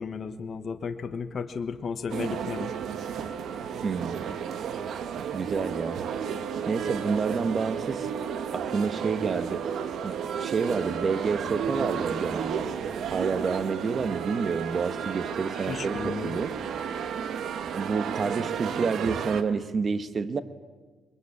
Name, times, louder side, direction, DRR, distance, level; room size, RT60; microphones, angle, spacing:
voice 1, 0.0-2.7 15.7-16.4, left 5 dB, 50° left, 8 dB, 1.2 m, -34 dB
Orchestra Tuning, 2.1-19.4, right 7 dB, 70° right, 1.3 m, -32 dB
voice 2, 3.8-4.4 5.3-6.0 6.7-8.1 8.5-9.6 10.0-12.7 13.1-16.6 17.7-20.4, right 5 dB, 45° right, 12 dB, 1.3 m, -29 dB
23.0 x 21.0 x 8.5 m, 1.4 s
cardioid pair, 90°, 0 cm